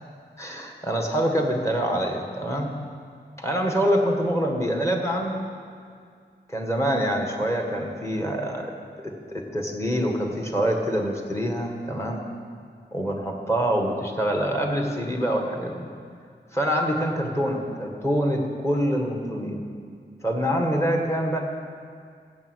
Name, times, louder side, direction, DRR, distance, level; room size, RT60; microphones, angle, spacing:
voice 1, 0.4-2.7 3.4-5.5 6.5-8.7 9.0-12.2 12.9-15.9 16.5-19.6 20.2-21.4, equal, 15° left, 2 dB, 1.6 m, -25 dB
16.0 x 7.4 x 6.3 m, 2.2 s
wide cardioid pair, 125°, 19 cm